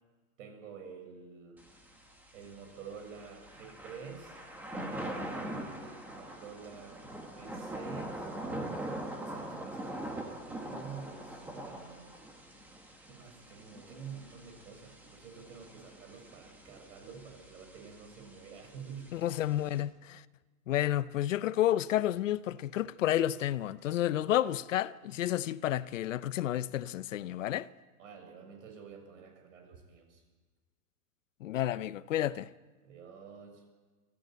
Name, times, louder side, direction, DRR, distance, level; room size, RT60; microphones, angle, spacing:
voice 1, 0.4-1.7 2.3-4.4 5.1-8.3 9.1-12.2 13.0-19.1 28.0-30.2 32.8-33.6, right 6 dB, 55° right, 6.9 m, -49 dB
Thunder / Rain, 1.6-19.8, right 1 dB, 5° right, 1.3 m, -43 dB
voice 2, 19.1-20.2 20.7-27.7 31.4-32.5, left 12 dB, 55° left, 0.7 m, -30 dB
24.0 x 14.5 x 9.2 m
supercardioid pair, 165°, 45 cm